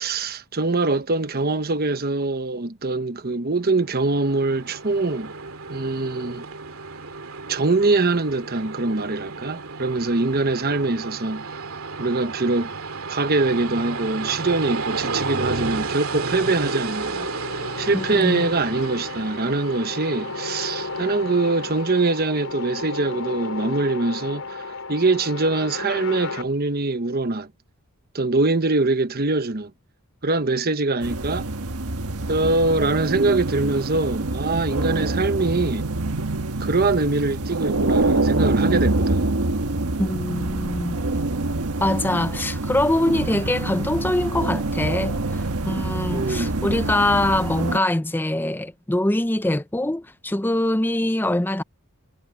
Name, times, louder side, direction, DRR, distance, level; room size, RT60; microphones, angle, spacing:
voice 1, 0.0-5.3 5.7-6.4 7.5-11.6 12.0-12.7 13.1-17.3 17.8-27.5 28.1-29.7 30.2-31.5 32.3-35.9 36.6-39.3 46.1-46.6, right 3 dB, 45° right, 1.1 m, -23 dB
Train, 3.7-22.4, right 4 dB, 65° right, 2.9 m, -32 dB
sound 1, 16.4-26.4, left 3 dB, 65° left, 4.7 m, -34 dB
voice 2, 17.9-18.5 40.0-41.0 41.8-51.6, left 1 dB, 10° left, 0.5 m, -23 dB
sound 2, 31.0-47.8, right 2 dB, 80° right, 1.4 m, -25 dB
head